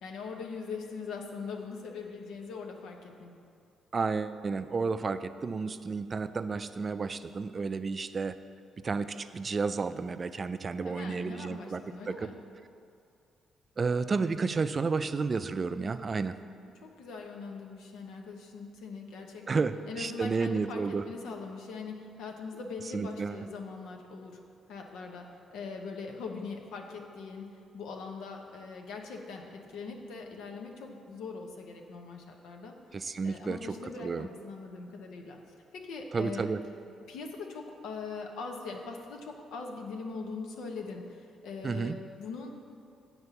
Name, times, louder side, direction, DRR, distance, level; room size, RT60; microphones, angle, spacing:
voice 1, 0.0-3.3 10.8-12.4 16.8-24.4 24.7-27.5 27.7-32.7 33.2-35.4 35.7-36.5 37.1-42.5, left 4 dB, 85° left, 2 dB, 0.9 m, -41 dB
voice 2, 3.9-8.3 8.8-11.8 12.1-12.3 13.8-16.3 19.5-21.0 22.9-23.4 32.9-33.7 34.0-34.3 36.1-36.6 41.6-42.0, right 4 dB, 35° right, 12 dB, 0.3 m, -31 dB
8.1 x 4.3 x 6.9 m, 2.4 s
cardioid pair, 90°, 0 cm